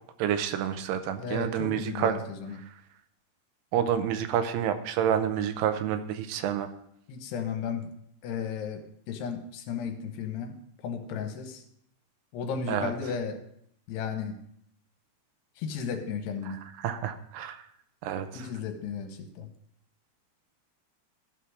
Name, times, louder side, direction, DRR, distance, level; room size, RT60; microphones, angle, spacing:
voice 1, 0.2-2.2 3.7-6.7 12.7-12.9 16.5-17.6 18.0-18.5, right 9 dB, 85° right, 9 dB, 2.7 m, -29 dB
voice 2, 1.2-2.6 7.1-7.9 8.2-10.5 10.8-11.6 12.3-13.4 13.9-14.4 15.6-16.6 18.3-19.5, left 6 dB, 80° left, 6 dB, 3.1 m, -34 dB
14.5 x 5.9 x 4.8 m, 0.71 s
omnidirectional pair, 4.8 m